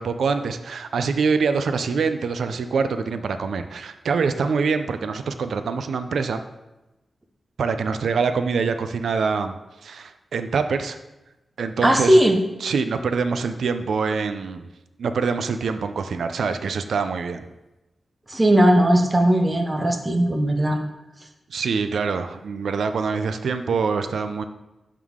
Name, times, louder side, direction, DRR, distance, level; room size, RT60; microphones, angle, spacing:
voice 1, 0.0-6.4 7.6-9.5 9.8-11.0 11.6-12.2 12.6-14.7 15.0-17.5 21.5-24.4, right 5 dB, 85° right, 9 dB, 0.4 m, -25 dB
voice 2, 11.8-12.4 18.3-20.8, right 1 dB, 15° right, 4 dB, 0.7 m, -18 dB
11.0 x 3.7 x 3.6 m, 0.99 s
wide cardioid pair, 170°, 0 cm